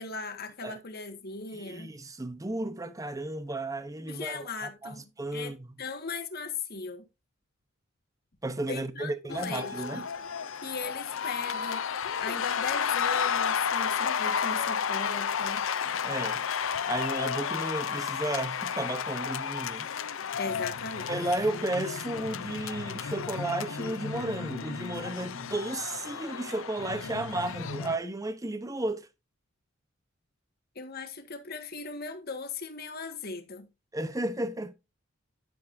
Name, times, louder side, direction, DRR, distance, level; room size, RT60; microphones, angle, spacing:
voice 1, 0.0-1.9 4.1-5.0 5.3-7.0 8.7-10.0 10.6-15.7 20.4-21.2 30.7-33.7, left 4 dB, 45° left, 1.7 m, -38 dB
voice 2, 1.5-5.7 8.4-10.1 16.0-16.4 16.9-19.9 21.1-29.1 33.9-34.7, right 2 dB, 15° right, 0.8 m, -33 dB
sound 1, 9.3-28.0, left 7 dB, 65° left, 0.6 m, -32 dB
10.5 x 8.9 x 2.6 m
head